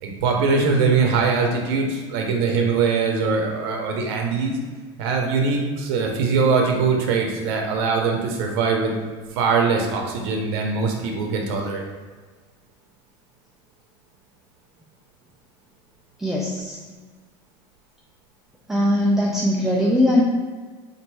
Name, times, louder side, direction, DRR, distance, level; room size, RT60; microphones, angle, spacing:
voice 1, 0.0-4.6 5.0-8.9 9.4-11.8, right 4 dB, 85° right, 2 dB, 0.7 m, -22 dB
voice 2, 16.2-17.0 18.7-20.2, left 1 dB, 5° right, -4 dB, 0.4 m, -20 dB
4.2 x 2.6 x 4.6 m, 1.4 s
cardioid pair, 145°, 13 cm